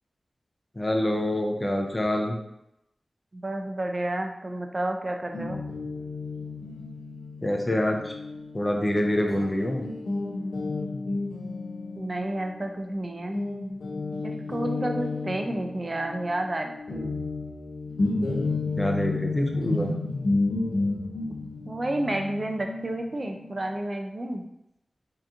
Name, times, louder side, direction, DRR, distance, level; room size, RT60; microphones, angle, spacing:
voice 1, 0.8-2.4 7.4-8.1 8.5-9.8 18.8-19.9, left 1 dB, 25° left, 2 dB, 0.4 m, -26 dB
voice 2, 3.3-5.6 11.9-13.4 14.2-17.2 21.7-24.4, right 1 dB, 40° right, 4 dB, 0.4 m, -31 dB
Guitar, 5.3-13.0 13.3-23.8, left 3 dB, 85° left, 0.4 m, -32 dB
3.5 x 2.8 x 2.4 m, 0.84 s
wide cardioid pair, 95°, 0 cm